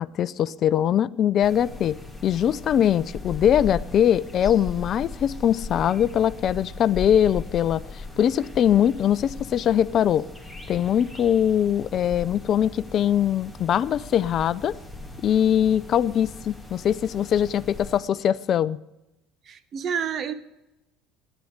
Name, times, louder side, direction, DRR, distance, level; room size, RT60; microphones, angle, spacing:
voice 1, 0.0-10.2 10.7-14.7 15.2-18.8, left 10 dB, 50° left, 17 dB, 0.5 m, -22 dB
sound 1, 1.4-18.0, left 3 dB, 5° right, 2.4 m, -39 dB
voice 2, 19.4-20.3, right 7 dB, 45° right, 13 dB, 1.1 m, -29 dB
13.5 x 10.0 x 6.5 m, 0.96 s
hypercardioid pair, 75°, 0 cm